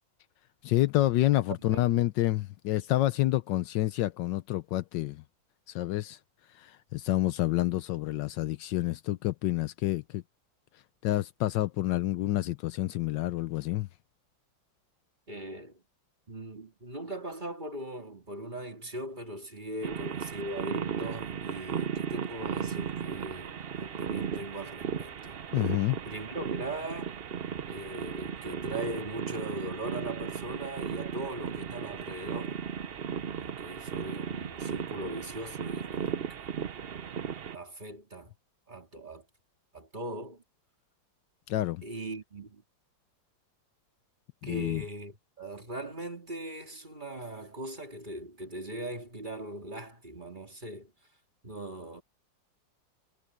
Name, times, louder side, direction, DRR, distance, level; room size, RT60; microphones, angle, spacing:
voice 1, 0.6-5.2 5.7-6.2 6.5-10.2 11.0-13.9 25.5-26.0 41.5-41.8 44.4-44.8, left 16 dB, 75° left, 1.2 m, -28 dB
voice 2, 15.3-15.8 16.3-25.4 26.0-27.2 27.7-32.6 33.4-36.5 37.5-38.3 38.7-39.3 39.7-40.4 41.8-42.6 44.4-50.9 51.4-52.0, right 1 dB, 25° right, 3.0 m, -40 dB
sound 1, 19.8-37.6, right 7 dB, 65° right, 0.6 m, -36 dB
omnidirectional pair, 2.0 m